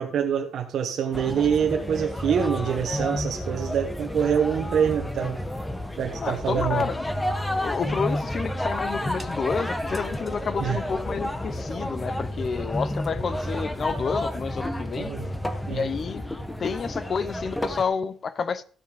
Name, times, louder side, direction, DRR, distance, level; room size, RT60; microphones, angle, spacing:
voice 1, 0.0-5.4 6.0-6.8 10.6-10.8 15.0-15.3 15.7-15.9, right 8 dB, 65° right, 1.2 m, -25 dB
sound 1, 1.1-17.8, left 1 dB, 10° left, 1.2 m, -31 dB
voice 2, 6.2-7.2 7.6-15.1 15.7-16.3 16.6-18.6, left 5 dB, 45° left, 0.9 m, -29 dB
14.0 x 6.6 x 5.2 m
cardioid pair, 90°, 0 cm